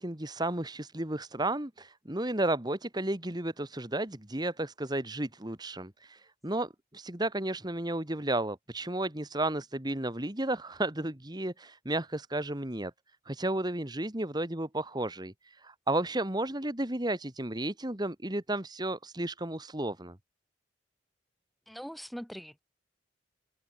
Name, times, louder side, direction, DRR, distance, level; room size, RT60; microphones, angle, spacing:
voice 1, 0.0-12.9 13.3-20.2, right 1 dB, 20° right, 1.9 m, -33 dB
voice 2, 21.7-22.6, equal, ahead, 7.3 m, -42 dB
head